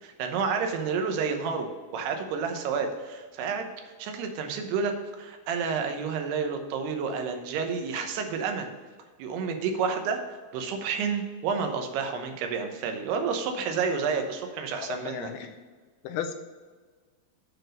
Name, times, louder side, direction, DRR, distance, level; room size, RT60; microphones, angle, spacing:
voice 1, 0.0-3.7 4.0-8.7 9.2-15.3, right 5 dB, 85° right, 5 dB, 3.0 m, -30 dB
voice 2, 14.8-15.5 16.0-16.3, left 8 dB, 85° left, 7 dB, 2.5 m, -34 dB
8.1 x 4.6 x 6.4 m, 1.4 s
omnidirectional pair, 4.6 m